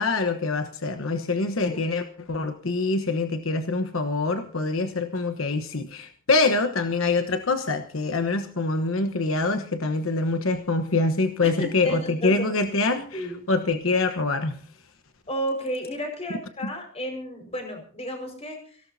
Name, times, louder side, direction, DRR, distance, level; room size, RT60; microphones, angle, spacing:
voice 1, 0.0-14.6 16.6-16.7, left 3 dB, 75° left, 8 dB, 1.2 m, -25 dB
voice 2, 11.4-12.5 13.1-13.4 15.3-18.8, equal, 30° left, 4 dB, 5.3 m, -32 dB
24.5 x 17.5 x 2.8 m, 0.43 s
head